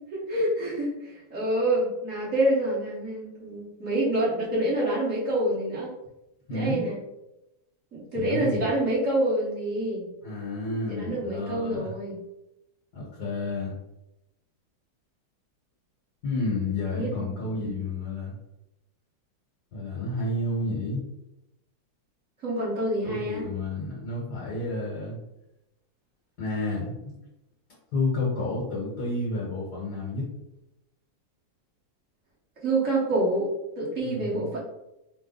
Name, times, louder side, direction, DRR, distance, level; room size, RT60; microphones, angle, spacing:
voice 1, 0.1-5.9 6.5-7.0 7.9-10.1 10.9-12.2 16.9-17.7 22.4-23.5 32.6-34.6, right 1 dB, 40° right, -6 dB, 1.8 m, -27 dB
voice 2, 6.5-6.8 8.1-8.7 10.2-11.9 12.9-13.8 16.2-18.4 19.7-21.0 23.0-25.2 26.4-27.1 27.9-30.3 34.0-34.5, left 2 dB, 50° left, -5 dB, 1.8 m, -30 dB
4.9 x 2.5 x 4.0 m, 0.90 s
omnidirectional pair, 2.3 m